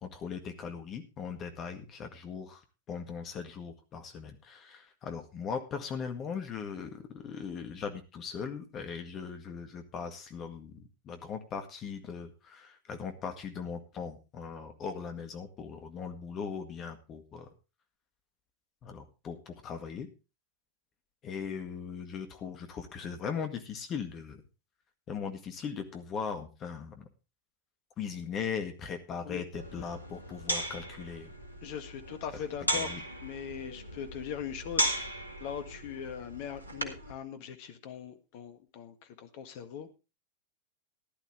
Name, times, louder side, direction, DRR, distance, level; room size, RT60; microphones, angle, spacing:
voice 1, 0.0-17.5 18.8-20.1 21.2-24.4 25.1-27.1 28.0-31.3 32.7-33.0, left 6 dB, 30° left, 6 dB, 1.8 m, -39 dB
sound 1, 29.5-37.1, right 1 dB, 85° left, 2.0 m, -36 dB
voice 2, 31.6-32.9 33.2-40.0, left 8 dB, 45° left, 9 dB, 1.7 m, -41 dB
15.5 x 11.5 x 3.3 m, 0.30 s
figure-of-eight pair, 90°, 0 cm